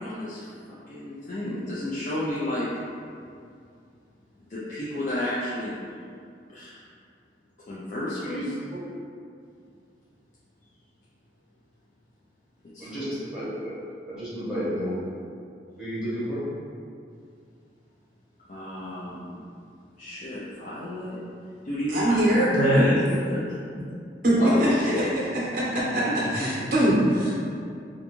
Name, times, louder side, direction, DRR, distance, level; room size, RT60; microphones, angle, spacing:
voice 1, 0.0-2.7 4.4-5.8 6.5-6.9 7.7-8.5 12.7-13.1 18.5-19.4 20.0-21.2 21.6-23.4 24.4-25.1 25.7-26.2, left 1 dB, 45° left, -9 dB, 0.3 m, -31 dB
voice 2, 12.8-13.7 14.1-15.0 15.8-16.4 26.4-26.5, equal, 5° right, -13 dB, 0.9 m, -31 dB
voice 3, 21.9-22.9 24.2-25.1 25.5-26.0 26.3-27.3, right 1 dB, 50° right, -7 dB, 0.6 m, -22 dB
2.5 x 2.2 x 3.0 m, 2.4 s
head